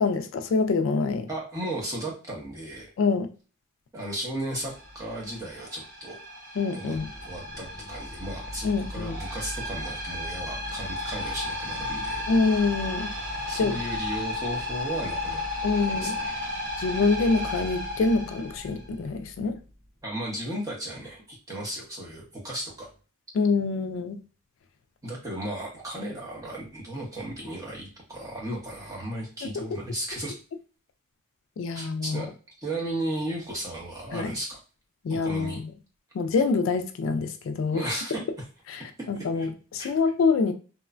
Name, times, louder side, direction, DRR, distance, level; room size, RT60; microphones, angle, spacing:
voice 1, 0.0-1.3 3.0-3.3 6.6-7.1 8.6-9.2 12.3-13.1 13.6-13.8 15.6-16.1 16.8-19.6 23.3-24.2 29.4-29.6 31.6-32.2 34.1-34.3 35.0-35.7 36.1-37.9 38.7-40.5, left 4 dB, 70° left, 0.3 m, -26 dB
voice 2, 1.3-2.9 3.9-6.2 6.7-7.0 7.2-12.3 13.5-15.4 15.8-16.3 20.0-22.9 25.0-30.3 31.7-32.3 32.6-34.6 35.1-35.6 37.7-38.2 39.1-39.5 39.8-39.9, right 1 dB, 15° right, 0.8 m, -35 dB
sound 1, 4.6-19.2, left 1 dB, 50° right, 1.3 m, -34 dB
3.0 x 2.1 x 2.4 m
head